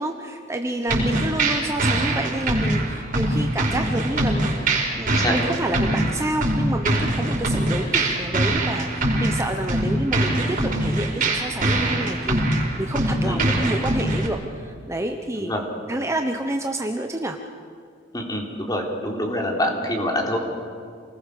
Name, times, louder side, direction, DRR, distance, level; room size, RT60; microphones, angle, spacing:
voice 1, 0.0-15.5 15.9-17.4, right 1 dB, 15° right, 4 dB, 1.1 m, -29 dB
voice 2, 0.9-1.3 5.1-5.4 6.0-6.1 13.2-13.4 15.4-15.6 18.1-20.4, left 1 dB, 20° left, 0 dB, 3.7 m, -26 dB
sound 1, 0.9-14.3, right 1 dB, 45° right, 5.3 m, -23 dB
28.5 x 20.5 x 6.7 m, 2.2 s
head